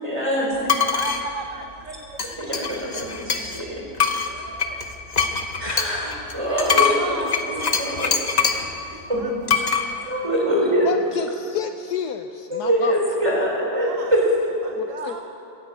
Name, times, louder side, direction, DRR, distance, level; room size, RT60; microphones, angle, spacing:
voice 1, 0.0-0.5 2.4-3.8 5.6-8.7 9.1-9.2 9.5-9.6 10.1-10.9 12.5-14.2, equal, 15° right, -2 dB, 3.3 m, -24 dB
sound 1, 0.7-1.2 2.2-3.6 4.0-8.7 9.5-9.9, left 6 dB, 40° left, 0.6 m, -23 dB
voice 2, 0.9-2.3 3.8-4.8 6.4-7.3 8.9-9.3 9.6-10.4 13.6-14.1 14.6-15.2, right 5 dB, 55° right, 5 dB, 1.0 m, -36 dB
voice 3, 10.8-13.0 14.8-15.2, left 8 dB, 70° left, 8 dB, 1.0 m, -29 dB
15.5 x 10.5 x 8.2 m, 2.8 s
omnidirectional pair, 2.0 m